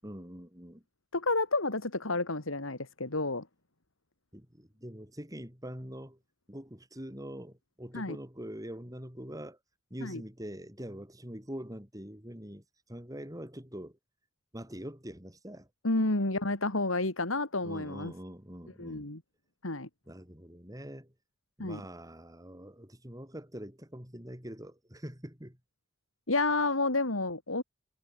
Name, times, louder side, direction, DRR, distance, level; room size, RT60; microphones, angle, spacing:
voice 1, 0.0-0.8 4.3-6.2 6.5-9.6 9.9-12.6 12.9-14.0 14.5-15.7 17.6-19.1 20.1-21.1 21.6-25.6, equal, 15° right, 7.3 m, -44 dB
voice 2, 1.1-3.5 7.9-8.2 10.0-10.2 15.8-18.1 18.8-19.2 19.6-19.9 21.6-21.8 26.3-27.6, left 2 dB, 90° left, 3.3 m, -30 dB
head